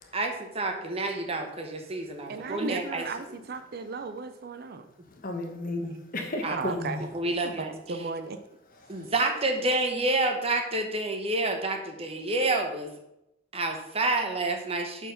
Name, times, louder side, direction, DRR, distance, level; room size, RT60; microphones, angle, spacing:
voice 1, 0.1-3.0 6.4-6.5 7.1-7.7 8.9-12.9 13.5-15.1, right 2 dB, 30° right, 0.9 m, -28 dB
voice 2, 2.3-4.9 6.5-7.0 7.4-8.4, right 4 dB, 50° right, 0.5 m, -35 dB
voice 3, 5.1-7.0 8.8-9.1, left 2 dB, 45° left, 1.1 m, -34 dB
6.6 x 4.5 x 5.1 m
head